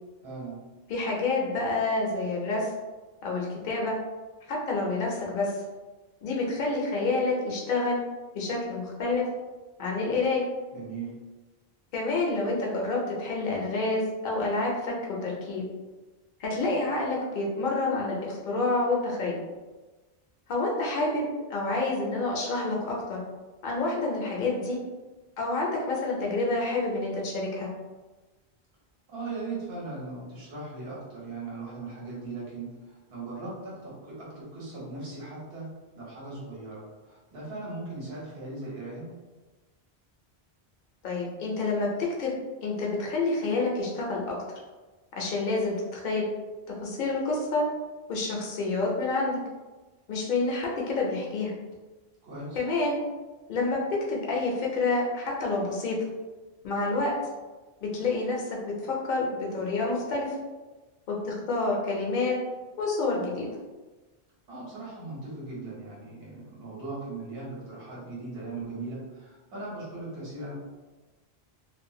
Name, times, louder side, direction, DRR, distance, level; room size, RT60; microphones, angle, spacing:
voice 1, 0.2-0.6 10.7-11.1 29.1-35.7 35.9-39.1 52.2-52.6 64.5-70.5, right 3 dB, 70° right, -6 dB, 1.2 m, -39 dB
voice 2, 0.9-2.7 3.2-3.9 4.5-5.5 6.2-8.0 8.3-9.2 9.8-10.4 11.9-15.6 16.4-19.4 20.5-21.2 21.5-23.2 23.6-24.8 25.4-27.7 41.0-42.3 42.6-44.4 45.2-46.2 46.8-47.6 48.1-49.4 50.1-51.5 52.6-53.0 53.5-56.0 56.6-57.1 57.8-60.4 61.1-62.4 62.8-63.5, left 3 dB, 55° left, -2 dB, 0.7 m, -28 dB
2.5 x 2.3 x 2.7 m, 1.2 s
omnidirectional pair, 1.1 m